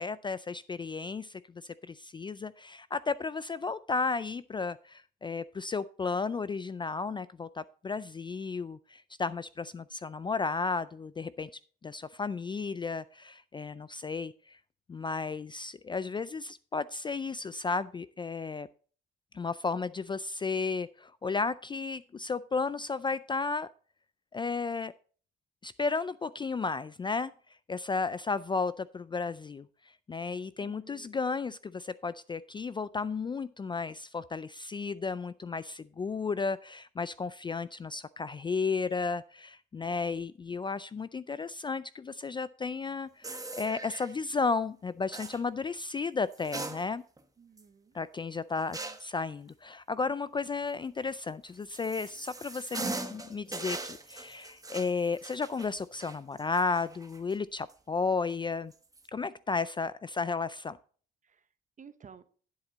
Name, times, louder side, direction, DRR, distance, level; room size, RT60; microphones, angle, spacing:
voice 1, 0.0-11.5 11.8-14.6 14.9-18.7 19.3-23.7 24.3-24.9 25.6-27.3 27.7-29.7 30.1-47.0 47.9-58.7 59.1-60.8, left 4 dB, 25° left, 17 dB, 0.3 m, -33 dB
voice 2, 30.6-31.2 47.4-48.0 48.7-48.9 61.3-61.4 61.8-62.2, right 6 dB, 40° right, 11 dB, 1.0 m, -53 dB
sound 1, 43.2-44.1 45.1-45.4 46.3-47.2 47.6-47.7 48.7-49.2 51.2-57.3 57.7-57.8 58.7-59.0, right 2 dB, 15° right, 1.1 m, -40 dB
11.5 x 7.2 x 3.9 m, 0.43 s
cardioid pair, 90°, 20 cm